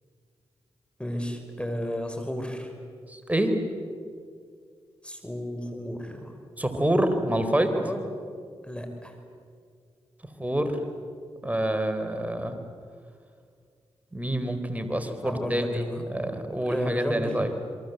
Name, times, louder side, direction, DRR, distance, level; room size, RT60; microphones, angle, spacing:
voice 1, 1.0-2.7 5.0-6.3 7.8-8.0 8.6-9.2 15.2-16.0 16.7-17.3, equal, 10° left, 5 dB, 5.7 m, -33 dB
voice 2, 3.1-3.6 6.6-7.7 10.4-10.8 11.4-12.6 14.1-17.5, right 1 dB, 15° right, 7 dB, 4.2 m, -27 dB
28.0 x 23.5 x 8.1 m, 2.2 s
supercardioid pair, 45°, 12 cm